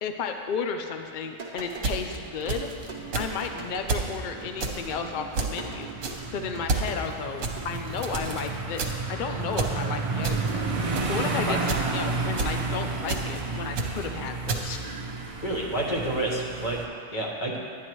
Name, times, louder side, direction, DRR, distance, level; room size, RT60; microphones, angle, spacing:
voice 1, 0.0-2.7 3.1-5.9 6.3-10.7 11.1-15.0, left 5 dB, 75° left, 5 dB, 0.4 m, -33 dB
sound 1, 1.0-8.4, right 4 dB, 35° right, 0.9 m, -43 dB
sound 2, 1.7-2.9 3.1-3.5 3.9-4.2 4.6-4.9 5.3-5.6 6.0-6.3 6.7-6.9 7.4-8.5 8.7-9.1 9.5-9.8 10.2-10.5 10.9-11.2 11.6-11.9 12.4-12.6 13.1-13.4 13.7-14.1 14.5-14.8, right 4 dB, 70° right, 1.2 m, -30 dB
sound 3, 2.4-16.9, right 3 dB, 50° right, 0.4 m, -32 dB
voice 2, 15.4-17.6, right 1 dB, 40° left, -2 dB, 1.3 m, -29 dB
10.5 x 9.3 x 3.0 m, 2.4 s
omnidirectional pair, 1.4 m